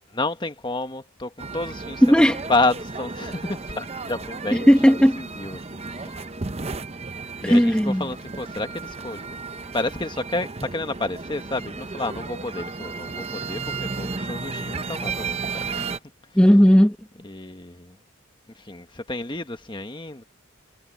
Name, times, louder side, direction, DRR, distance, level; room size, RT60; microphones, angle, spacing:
voice 1, 0.1-4.7 5.1-5.6 5.9-6.2 7.4-9.3 9.7-15.9 17.2-18.0 18.5-20.2, left 2 dB, 20° left, 1.5 m, -30 dB
sound 1, 1.4-16.0, right 4 dB, 30° right, 0.8 m, -34 dB
voice 2, 2.0-2.4 4.7-5.2 7.4-8.0 16.3-17.0, equal, 5° left, 1.1 m, -15 dB
head